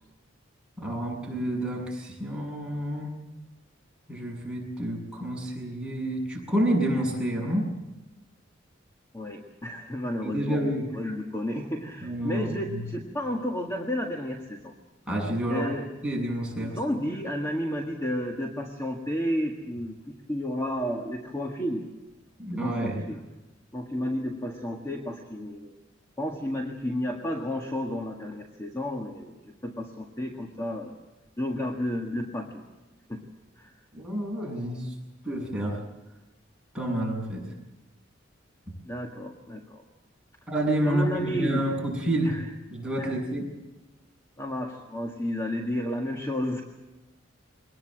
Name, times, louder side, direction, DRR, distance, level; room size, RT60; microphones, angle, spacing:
voice 1, 0.8-3.1 4.1-7.7 10.2-10.9 12.0-12.8 15.1-15.7 16.0-16.8 22.4-23.0 33.9-34.9 35.2-35.8 36.7-37.4 40.5-42.4 42.7-43.5, right 1 dB, 5° right, -3 dB, 7.6 m, -29 dB
voice 2, 9.1-10.6 10.9-14.7 15.5-15.9 16.6-21.8 22.5-23.2 23.7-25.8 26.2-30.9 31.4-32.6 33.1-33.2 33.6-33.8 38.8-39.8 40.8-41.6 42.2-42.4 43.0-43.2 44.4-46.6, equal, 15° left, 1 dB, 1.8 m, -32 dB
23.0 x 19.5 x 7.7 m, 1.1 s
head